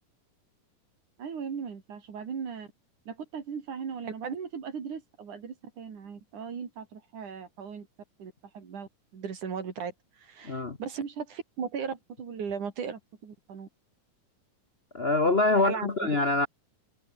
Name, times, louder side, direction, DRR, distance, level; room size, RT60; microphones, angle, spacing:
voice 1, 1.2-2.7 3.1-7.9 8.2-13.7 15.5-15.9, right 6 dB, 70° right, 4.8 m, -37 dB
voice 2, 10.4-10.8 14.9-16.5, left 2 dB, 70° left, 0.5 m, -25 dB
omnidirectional pair, 3.7 m